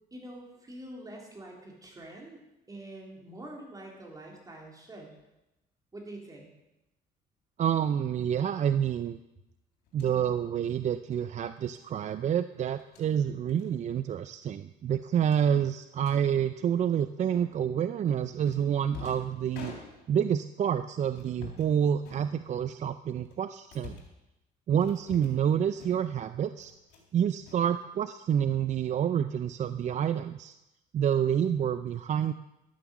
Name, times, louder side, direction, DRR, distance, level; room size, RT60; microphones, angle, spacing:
voice 1, 0.1-2.4 2.7-5.1 5.9-6.5, right 1 dB, 20° right, -1 dB, 3.9 m, -45 dB
voice 2, 7.6-9.2 9.9-19.7 20.1-24.0 24.7-26.7 27.1-30.5 30.9-32.3, right 9 dB, 45° right, 12 dB, 0.5 m, -28 dB
sound 1, 9.9-10.2 11.6-11.8 12.7-13.1 13.5-13.7 14.0-14.2 14.5-14.6 15.2-16.2 17.3-17.8 18.4-20.3 21.1-21.7 22.0-22.7 23.2-24.2 24.8-25.5 25.8-26.2 26.6-27.1 27.4-28.3, left 5 dB, 85° left, 3.8 m, -48 dB
13.0 x 9.2 x 7.2 m, 0.94 s
cardioid pair, 110°, 17 cm